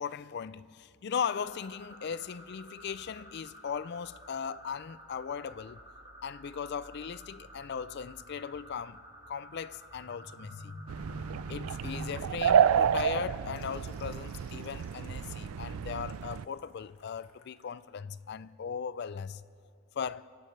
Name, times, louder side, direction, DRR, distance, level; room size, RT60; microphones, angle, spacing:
voice 1, 0.0-5.8 6.2-9.0 9.3-10.8 11.5-19.4 19.9-20.3, left 7 dB, 50° left, 0.3 m, -38 dB
sound 1, 1.2-12.1, equal, 25° right, 5.1 m, -49 dB
sound 2, 10.9-16.4, right 8 dB, 85° right, 0.4 m, -29 dB
Water tap faucet / Sink (filling or washing), 13.5-17.8 18.3-18.5, left 3 dB, 90° left, 2.0 m, -59 dB
25.0 x 17.0 x 3.2 m
head